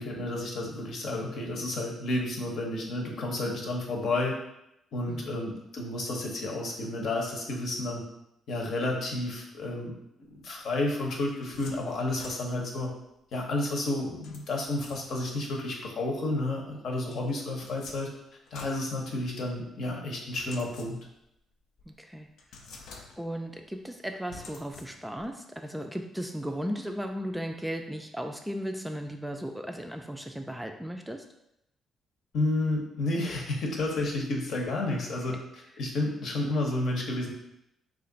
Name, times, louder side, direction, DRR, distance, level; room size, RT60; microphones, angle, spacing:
voice 1, 0.0-4.4 4.9-8.0 8.5-10.0 10.3-12.9 13.3-18.1 18.5-21.0 32.3-37.3, left 2 dB, 70° left, 0 dB, 0.9 m, -31 dB
sound 1, 10.9-12.8 14.2-15.4 17.1-19.6 20.3-21.3 21.8-21.9 22.4-23.5 24.3-25.3, left 4 dB, 85° left, 0.5 m, -50 dB
voice 2, 21.9-22.7 23.2-31.2 35.3-35.4, equal, 5° right, 4 dB, 0.3 m, -36 dB
3.2 x 2.5 x 3.9 m, 0.81 s
cardioid pair, 90°, 0 cm